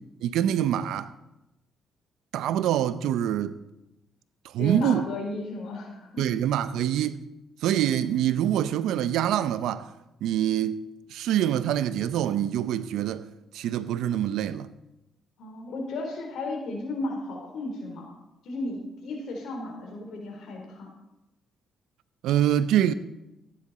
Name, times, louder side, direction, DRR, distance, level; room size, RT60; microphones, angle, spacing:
voice 1, 0.2-1.1 2.3-3.6 4.4-5.1 6.2-7.2 7.6-9.9 10.2-10.8 11.1-13.2 13.5-14.7 22.2-22.9, right 11 dB, 85° right, 0.6 m, -25 dB
voice 2, 4.6-6.2 15.4-18.1 18.4-20.9, left 2 dB, 75° left, 3.8 m, -34 dB
14.5 x 10.0 x 4.2 m
cardioid pair, 90°, 0 cm